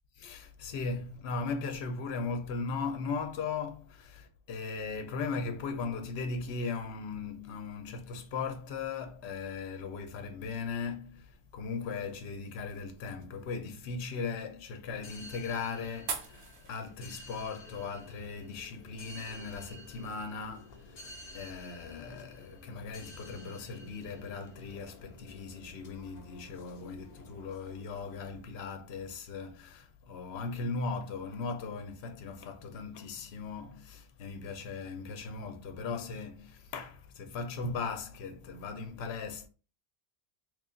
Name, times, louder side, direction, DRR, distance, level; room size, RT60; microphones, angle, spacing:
voice 1, 0.2-39.5, left 4 dB, 75° left, 0.9 m, -38 dB
sound 1, 11.2-19.6, right 5 dB, 85° right, 0.9 m, -48 dB
sound 2, 15.0-28.4, left 1 dB, 45° left, 0.7 m, -52 dB
3.2 x 2.3 x 3.8 m
omnidirectional pair, 1.1 m